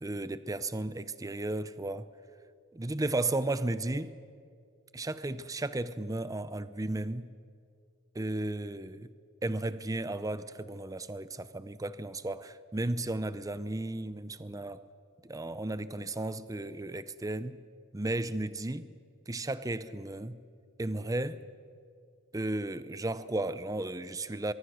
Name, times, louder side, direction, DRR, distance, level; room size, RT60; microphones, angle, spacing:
voice 1, 0.0-2.1 2.7-4.2 4.9-7.3 8.1-9.1 9.4-14.8 15.2-17.6 17.9-18.9 19.3-20.4 20.8-21.4 22.3-24.5, right 2 dB, 15° right, 0.6 m, -34 dB
23.5 x 23.0 x 6.3 m
head